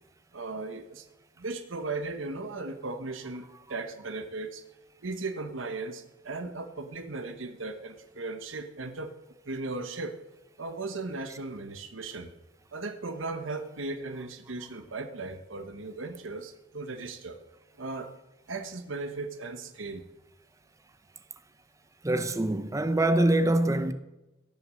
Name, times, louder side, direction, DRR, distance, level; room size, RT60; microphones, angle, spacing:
voice 1, 0.3-1.0 1.4-4.6 5.0-9.1 9.4-10.1 10.6-12.3 12.7-17.4 17.8-18.1 18.5-20.1, right 3 dB, 85° right, 1.1 m, -37 dB
voice 2, 22.0-23.9, right 1 dB, 15° right, 0.7 m, -24 dB
16.0 x 6.7 x 7.5 m
head